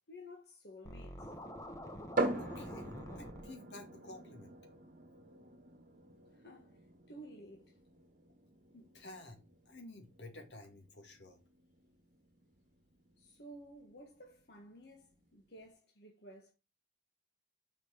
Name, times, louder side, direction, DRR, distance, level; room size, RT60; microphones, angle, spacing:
voice 1, 0.1-1.3 6.3-7.8 13.2-16.5, equal, 65° left, 1.5 m, -54 dB
Scratching (performance technique), 0.8-3.4, equal, 20° left, 1.2 m, -46 dB
sound 1, 2.2-15.7, right 2 dB, 45° right, 1.4 m, -44 dB
voice 2, 2.4-4.5 8.7-11.4, left 2 dB, 80° left, 2.2 m, -52 dB
6.6 x 5.1 x 5.0 m
head